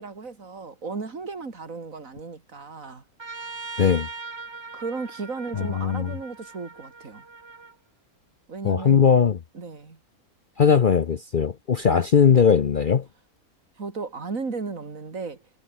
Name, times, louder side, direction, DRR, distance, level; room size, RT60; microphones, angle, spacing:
voice 1, 0.0-3.0 4.7-7.2 8.5-9.1 9.5-10.0 13.8-15.4, right 4 dB, 60° right, 3.3 m, -35 dB
Trumpet, 3.2-7.7, right 4 dB, 25° right, 0.7 m, -40 dB
voice 2, 5.6-6.1 8.6-9.4 10.6-13.0, left 6 dB, 45° left, 0.7 m, -19 dB
omnidirectional pair, 1.6 m